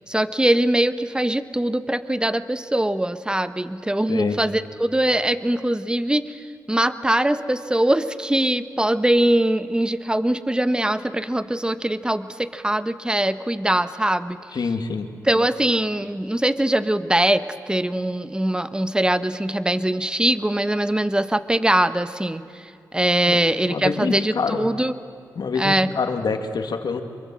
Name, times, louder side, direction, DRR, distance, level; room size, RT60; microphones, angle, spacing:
voice 1, 0.1-6.4 6.7-14.4 15.2-24.9 25.6-25.9, right 1 dB, 10° right, 12 dB, 1.1 m, -22 dB
voice 2, 4.1-4.4 14.5-15.1 23.3-23.4 23.7-24.7 25.4-27.0, left 5 dB, 75° left, 6 dB, 2.2 m, -26 dB
25.5 x 23.5 x 7.6 m, 2.4 s
cardioid pair, 70°, 7 cm